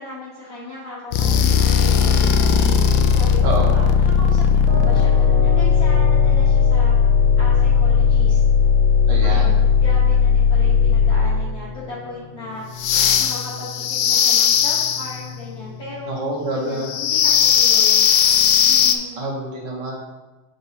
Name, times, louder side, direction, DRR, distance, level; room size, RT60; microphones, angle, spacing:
voice 1, 0.0-7.0 7.4-8.4 9.2-18.1 18.7-19.2, left 2 dB, 55° left, -8 dB, 1.8 m, -36 dB
sound 1, 1.1-11.5 12.8-15.2 16.8-19.0, left 7 dB, 80° left, 1.3 m, -16 dB
voice 2, 3.4-3.7 9.1-9.5 16.1-16.9 19.2-19.9, right 1 dB, 65° right, -2 dB, 2.1 m, -26 dB
sound 2, 4.7-17.7, left 4 dB, 80° right, 2.3 m, -33 dB
7.7 x 4.7 x 4.1 m, 1.1 s
omnidirectional pair, 2.2 m